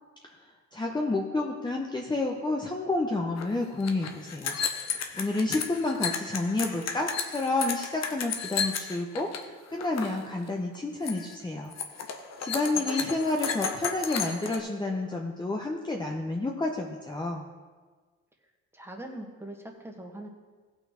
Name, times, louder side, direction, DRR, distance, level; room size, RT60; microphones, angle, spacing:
voice 1, 0.7-4.6 5.1-11.7 12.4-17.4, left 2 dB, 15° left, 0 dB, 0.9 m, -30 dB
sound 1, 3.4-3.5 3.7-9.4 9.7-10.2 10.5-10.8 11.1-11.3 11.7-14.6, left 6 dB, 60° left, 1.1 m, -33 dB
voice 2, 12.7-13.1 18.7-20.3, right 1 dB, 10° right, 2 dB, 1.6 m, -42 dB
16.0 x 6.0 x 4.3 m, 1.4 s
cardioid pair, 90°, 30 cm